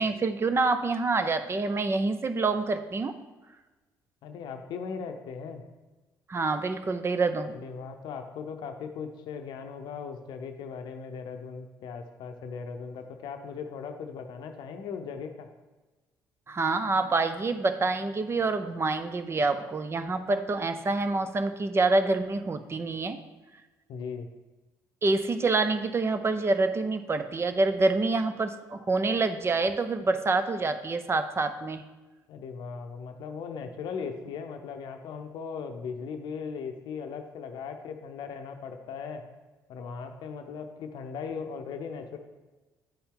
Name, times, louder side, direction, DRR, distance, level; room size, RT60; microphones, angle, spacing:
voice 1, 0.0-3.1 6.3-7.5 16.5-23.2 25.0-31.8, right 3 dB, 35° right, 9 dB, 0.6 m, -27 dB
voice 2, 4.2-5.6 7.5-15.5 23.9-24.3 32.3-39.3 39.7-42.2, left 6 dB, 75° left, 6 dB, 0.6 m, -38 dB
8.9 x 4.4 x 3.7 m, 1.2 s
supercardioid pair, 65°, 8 cm